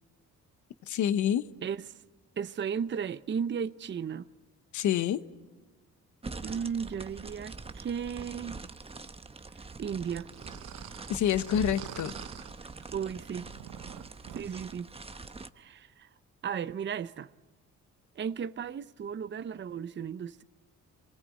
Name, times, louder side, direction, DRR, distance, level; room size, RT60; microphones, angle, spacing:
voice 1, 0.9-1.4 4.7-5.2 11.1-12.1, left 10 dB, 75° left, 1.1 m, -27 dB
voice 2, 1.6-2.0 2.4-4.3 6.4-8.6 9.5-10.3 12.9-13.5 14.3-14.9 15.5-16.1 16.4-17.3 18.2-20.4, right 7 dB, 40° right, 0.7 m, -35 dB
sound 1, 6.2-15.5, right 3 dB, 20° right, 1.0 m, -44 dB
sound 2, 10.0-14.6, right 12 dB, 90° right, 0.9 m, -45 dB
26.5 x 19.5 x 8.5 m
cardioid pair, 90°, 30 cm